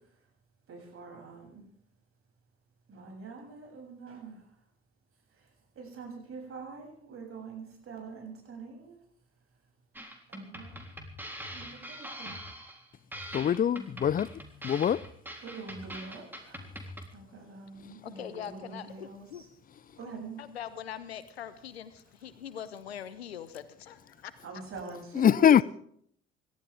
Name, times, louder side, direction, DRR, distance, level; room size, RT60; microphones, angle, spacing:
voice 1, 0.7-1.6 2.9-4.4 5.3-5.5 5.7-9.0 10.3-10.9 11.5-12.4 15.4-16.7 17.1-19.5 20.0-20.4 24.2-25.6, right 4 dB, 45° right, 7.8 m, -44 dB
sound 1, 9.9-17.1, equal, 5° right, 3.6 m, -43 dB
voice 2, 13.3-14.3 14.6-15.0 25.1-25.6, left 9 dB, 30° left, 0.6 m, -23 dB
voice 3, 18.0-19.4 20.4-24.3, left 9 dB, 80° left, 1.2 m, -42 dB
28.0 x 13.0 x 3.7 m
figure-of-eight pair, 50°, 31 cm